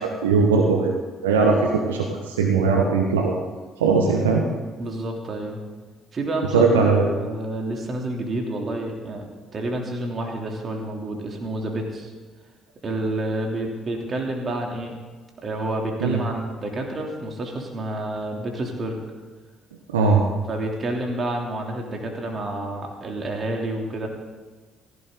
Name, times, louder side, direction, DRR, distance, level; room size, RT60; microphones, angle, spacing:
voice 1, 0.0-3.3 3.8-4.4 6.5-7.0 16.0-16.2 19.9-20.2, right 4 dB, 80° right, 1 dB, 1.3 m, -19 dB
voice 2, 4.8-5.6 6.1-9.2 9.5-12.1 12.8-14.9 15.4-19.0 20.5-24.1, right 1 dB, 40° right, 1 dB, 3.2 m, -29 dB
16.0 x 15.0 x 4.0 m, 1.4 s
figure-of-eight pair, 45°, 0 cm